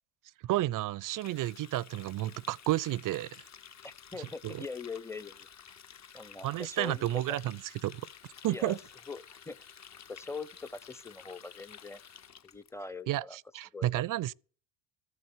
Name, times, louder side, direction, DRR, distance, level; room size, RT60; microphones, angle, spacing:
voice 1, 0.4-3.4 4.2-4.6 6.4-8.0 8.4-8.8 13.1-14.3, right 15 dB, 45° right, 0.5 m, -32 dB
Water tap faucet, 1.1-12.7, left 8 dB, 35° left, 0.9 m, -52 dB
voice 2, 3.8-5.5 6.1-7.4 8.5-8.8 9.1-9.6 10.1-12.0 12.4-13.4 13.7-14.0, left 4 dB, 5° left, 0.7 m, -42 dB
14.0 x 7.9 x 8.1 m
supercardioid pair, 75°, 46 cm